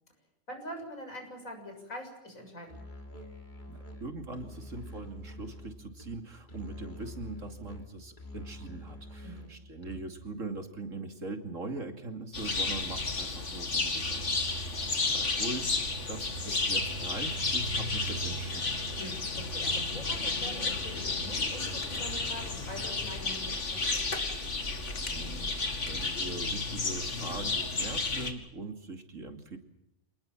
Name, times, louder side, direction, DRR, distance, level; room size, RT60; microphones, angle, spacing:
voice 1, 0.5-2.8 9.2-9.6 19.0-24.1, equal, 75° left, 4 dB, 7.3 m, -44 dB
Musical instrument, 2.7-10.3, left 1 dB, 35° left, 3.5 m, -46 dB
voice 2, 3.7-15.8 16.1-18.8 24.7-29.6, right 3 dB, 65° right, 6 dB, 3.1 m, -42 dB
sound 1, 12.3-28.3, left 3 dB, 60° left, 2.7 m, -32 dB
28.0 x 20.0 x 7.4 m, 0.87 s
omnidirectional pair, 1.4 m